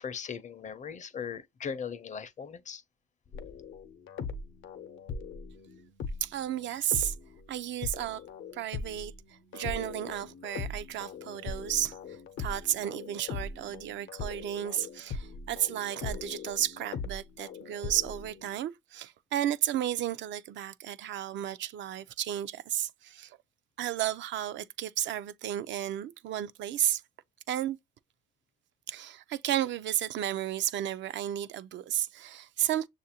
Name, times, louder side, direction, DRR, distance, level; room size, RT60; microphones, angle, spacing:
voice 1, 0.0-2.8, left 6 dB, 40° left, 0.5 m, -39 dB
sound 1, 3.3-7.5 7.8-18.5, left 4 dB, 75° left, 0.7 m, -40 dB
voice 2, 6.2-7.1 7.5-8.2 8.5-9.1 9.5-23.4 23.8-27.0 27.5-27.8 28.9-32.9, right 12 dB, 70° right, 0.4 m, -33 dB
6.5 x 2.5 x 2.8 m
cardioid pair, 90°, 20 cm